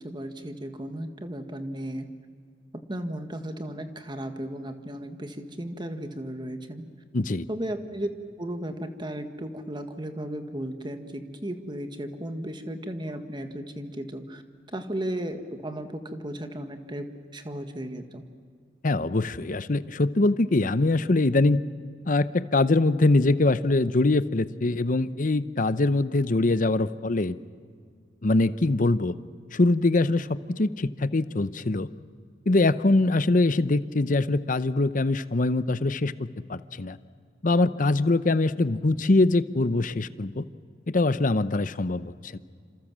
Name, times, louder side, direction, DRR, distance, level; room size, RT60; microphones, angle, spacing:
voice 1, 0.0-2.1 2.7-6.9 7.5-8.1 8.4-14.4 14.7-18.2, right 1 dB, 25° right, 7 dB, 1.7 m, -35 dB
voice 2, 7.1-7.5 18.8-21.6 22.0-27.4 28.2-29.2 29.5-31.9 32.5-37.0 37.4-40.4 40.9-42.4, left 2 dB, 45° left, 14 dB, 0.7 m, -23 dB
27.5 x 27.0 x 7.5 m, 2.1 s
head